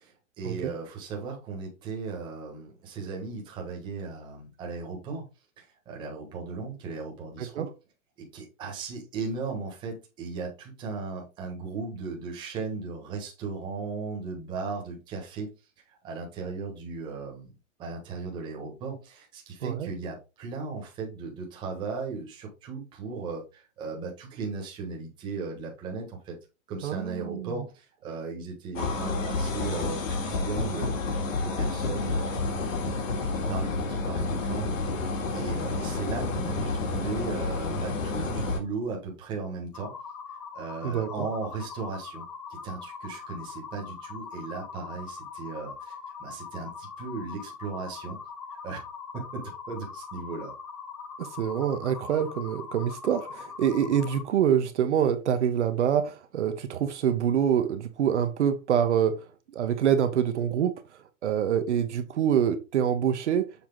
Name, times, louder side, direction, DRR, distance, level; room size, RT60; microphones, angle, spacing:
voice 1, 0.0-5.3 5.6-7.7 8.2-15.5 15.9-17.5 17.8-26.4 26.7-32.4 33.3-34.8 35.3-39.9 40.5-42.2 42.5-48.2 48.6-48.8 49.1-50.5, right 4 dB, 10° right, 1.3 m, -36 dB
voice 2, 26.8-27.5 40.8-41.3 51.2-59.2 59.5-60.8 61.2-63.4, right 9 dB, 55° right, 1.1 m, -26 dB
sound 1, 28.7-38.6, left 3 dB, 70° left, 2.3 m, -30 dB
sound 2, 39.7-54.2, left 6 dB, 25° left, 0.5 m, -41 dB
7.1 x 4.4 x 3.9 m
hypercardioid pair, 180°, 41 cm